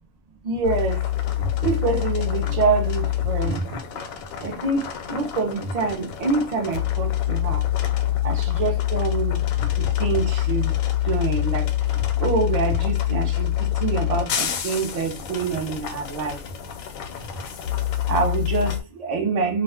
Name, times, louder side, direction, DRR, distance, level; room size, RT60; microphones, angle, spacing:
voice 1, 0.4-1.0 1.4-3.8 4.4-7.6 8.2-10.7 11.0-13.5 13.8-16.4 18.1-19.6, right 4 dB, 40° right, 0.6 m, -26 dB
sound 1, 0.6-18.8, left 12 dB, 85° left, 1.0 m, -26 dB
2.4 x 2.3 x 3.4 m
omnidirectional pair, 1.4 m